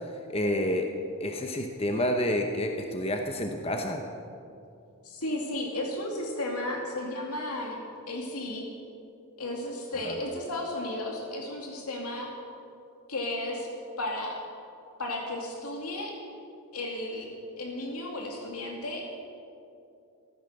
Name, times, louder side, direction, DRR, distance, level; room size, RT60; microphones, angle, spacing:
voice 1, 0.3-0.9 1.2-4.0 10.0-10.1, left 1 dB, 25° left, 4 dB, 0.9 m, -29 dB
voice 2, 5.0-7.8 8.1-8.6 9.4-12.3 13.1-13.7 14.0-14.4 15.0-16.2 16.7-19.2, left 1 dB, 90° left, 0 dB, 2.4 m, -34 dB
15.0 x 14.0 x 6.7 m, 2.5 s
head